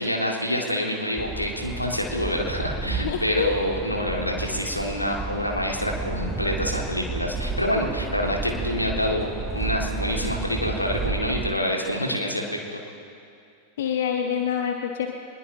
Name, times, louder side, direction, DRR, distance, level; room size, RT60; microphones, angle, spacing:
voice 1, 0.0-12.8, left 1 dB, 85° left, 0 dB, 2.2 m, -27 dB
sound 1, 1.2-11.5, right 4 dB, 10° right, 0.9 m, -32 dB
voice 2, 3.0-3.6 13.8-15.1, left 8 dB, 60° left, 4 dB, 0.9 m, -26 dB
24.0 x 21.0 x 2.9 m, 2.4 s
figure-of-eight pair, 90°, 0 cm